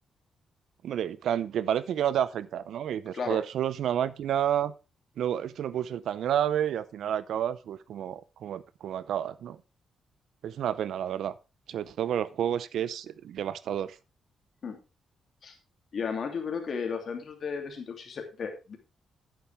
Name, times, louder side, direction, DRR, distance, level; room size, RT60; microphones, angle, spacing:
voice 1, 0.8-4.7 5.2-9.6 10.4-11.3 11.7-14.0, right 10 dB, 80° right, 17 dB, 0.6 m, -30 dB
voice 2, 15.9-18.8, left 6 dB, 50° left, 3 dB, 2.8 m, -34 dB
10.5 x 9.0 x 3.5 m, 0.29 s
cardioid pair, 120°, 0 cm